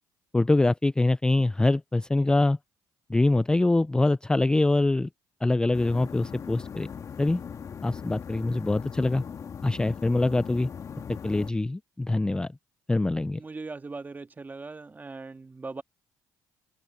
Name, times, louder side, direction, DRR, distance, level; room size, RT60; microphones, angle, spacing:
voice 1, 0.3-2.6 3.1-5.1 5.4-6.9 7.2-7.4 7.8-9.2 9.6-10.7 11.2-12.5 12.9-13.4, left 2 dB, 10° left, 0.4 m, -24 dB
sound 1, 5.7-11.5, left 7 dB, 45° left, 1.9 m, -39 dB
voice 2, 13.4-15.8, right 3 dB, 25° right, 1.9 m, -39 dB
cardioid pair, 85°, 8 cm